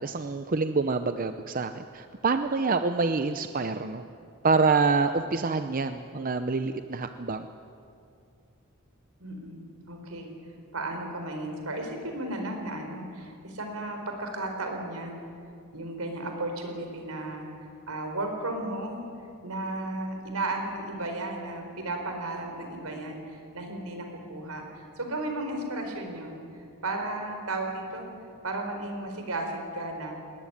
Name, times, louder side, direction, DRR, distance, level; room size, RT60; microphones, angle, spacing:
voice 1, 0.0-4.0 4.4-7.5, right 4 dB, 40° right, 9 dB, 0.6 m, -26 dB
voice 2, 9.2-10.3 10.7-15.2 15.7-17.5 17.9-19.0 19.4-26.4 26.8-28.1 28.4-30.1, right 2 dB, 80° right, 4 dB, 4.4 m, -34 dB
20.5 x 18.5 x 9.9 m, 2.5 s
head